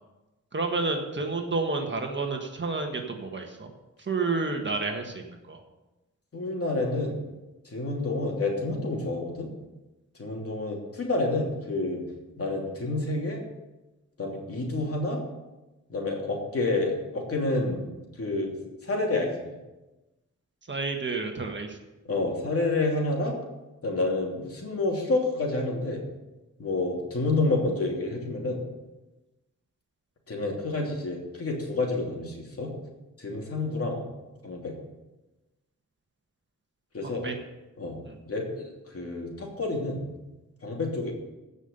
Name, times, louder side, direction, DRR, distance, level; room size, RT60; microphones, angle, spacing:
voice 1, 0.5-3.7 4.0-5.6 20.7-21.8 37.0-37.3 38.0-38.1, right 3 dB, 35° right, 3 dB, 1.6 m, -30 dB
voice 2, 6.3-7.2 7.6-9.5 10.2-12.0 12.4-13.4 14.2-15.2 15.9-17.8 18.2-18.6 18.8-19.5 22.0-23.4 23.8-26.0 26.6-28.6 30.3-32.7 33.2-34.0 34.4-34.7 36.9-37.3 37.8-38.0 38.3-40.0 40.6-41.1, left 2 dB, 45° left, -1 dB, 3.0 m, -29 dB
16.0 x 5.6 x 6.8 m, 1.1 s
wide cardioid pair, 120°, 31 cm